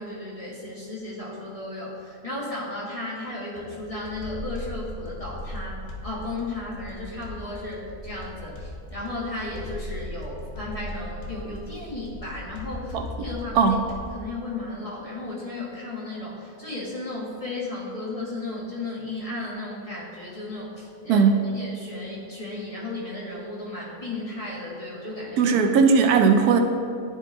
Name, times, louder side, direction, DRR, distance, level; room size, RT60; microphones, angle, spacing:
voice 1, 0.0-13.7 14.1-25.5, left 2 dB, 25° left, -6 dB, 1.4 m, -34 dB
sound 1, 3.6-14.2, left 1 dB, 65° left, 1.3 m, -38 dB
voice 2, 12.9-13.3 13.5-13.8 21.1-21.4 25.4-26.6, right 5 dB, 85° right, 5 dB, 1.2 m, -18 dB
11.0 x 4.1 x 3.7 m, 2.4 s
omnidirectional pair, 1.6 m